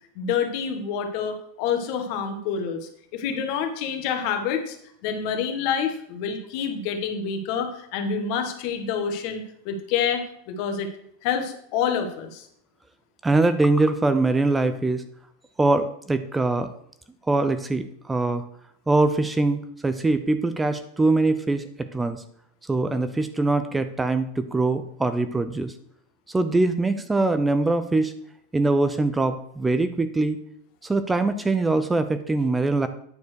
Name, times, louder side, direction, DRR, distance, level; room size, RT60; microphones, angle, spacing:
voice 1, 0.1-4.8 5.0-10.9 11.2-12.4, left 7 dB, 55° left, 6 dB, 1.6 m, -27 dB
voice 2, 13.2-15.0 15.6-16.7 17.3-18.4 18.9-21.6 21.9-22.2 22.7-25.7 26.3-28.1 28.5-30.4 30.8-32.9, right 2 dB, 10° right, 10 dB, 0.6 m, -23 dB
9.7 x 4.4 x 6.4 m, 0.69 s
supercardioid pair, 130°, 0 cm